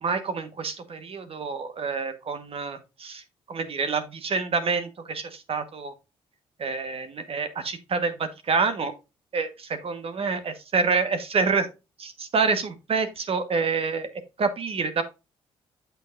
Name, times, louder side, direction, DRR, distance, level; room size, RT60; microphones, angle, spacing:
voice 1, 0.0-3.2 3.5-5.9 6.6-8.9 9.3-9.5 9.8-11.7 12.0-14.1 14.4-15.0, right 4 dB, 50° right, 9 dB, 1.2 m, -27 dB
7.9 x 6.8 x 2.5 m, 0.27 s
cardioid pair, 70°, 12 cm